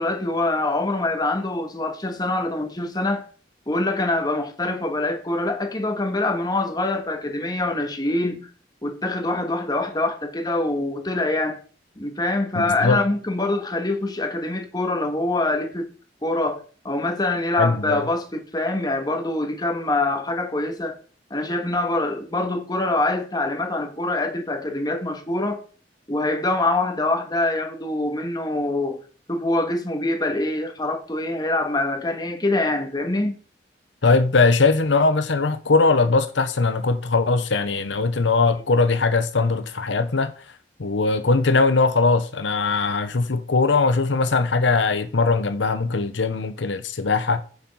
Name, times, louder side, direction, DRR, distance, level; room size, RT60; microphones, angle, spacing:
voice 1, 0.0-3.3 3.7-8.5 8.8-11.6 12.0-15.9 16.2-21.0 21.3-25.6 26.1-29.0 29.3-33.4, left 2 dB, 20° left, 1.5 m, -24 dB
voice 2, 12.5-13.0 17.6-18.0 34.0-40.3 40.8-47.4, left 3 dB, 90° left, 0.8 m, -20 dB
7.4 x 7.2 x 5.5 m
head